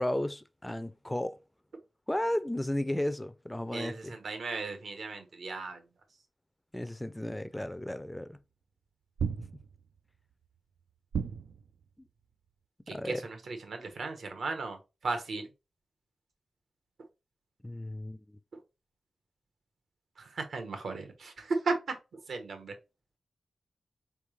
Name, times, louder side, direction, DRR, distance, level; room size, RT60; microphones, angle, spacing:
voice 1, 0.0-1.4 2.1-4.2 6.7-8.4 12.9-13.2 17.6-18.4, left 1 dB, 10° left, 0.4 m, -34 dB
voice 2, 3.7-5.8 12.9-15.5 20.2-21.7 22.1-22.7, right 3 dB, 70° right, 1.1 m, -36 dB
sound 1, 9.2-10.0 11.1-11.9, right 7 dB, 90° right, 0.3 m, -34 dB
4.8 x 3.5 x 3.1 m
wide cardioid pair, 120°, 0 cm